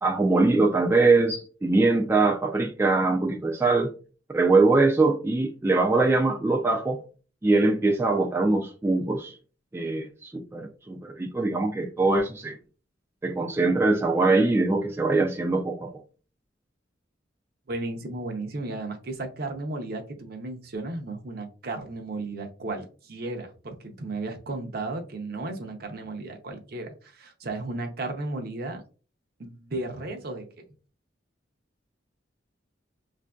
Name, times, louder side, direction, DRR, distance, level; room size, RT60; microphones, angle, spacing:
voice 1, 0.0-3.9 4.3-7.0 7.4-9.4 9.7-12.5 13.2-15.9, right 3 dB, 15° right, 0.3 m, -22 dB
voice 2, 17.7-28.8 29.4-30.6, right 2 dB, 55° right, 0.6 m, -34 dB
5.1 x 2.5 x 2.2 m
head